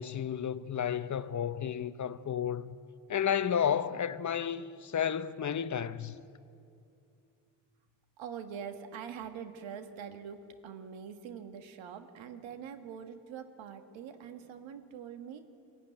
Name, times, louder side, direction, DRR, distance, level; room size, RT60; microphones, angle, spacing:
voice 1, 0.0-2.7 3.1-6.2, left 8 dB, 40° left, 0.8 m, -32 dB
voice 2, 8.2-15.4, right 7 dB, 75° right, 1.7 m, -44 dB
20.0 x 14.0 x 9.9 m
supercardioid pair, 70°, 46 cm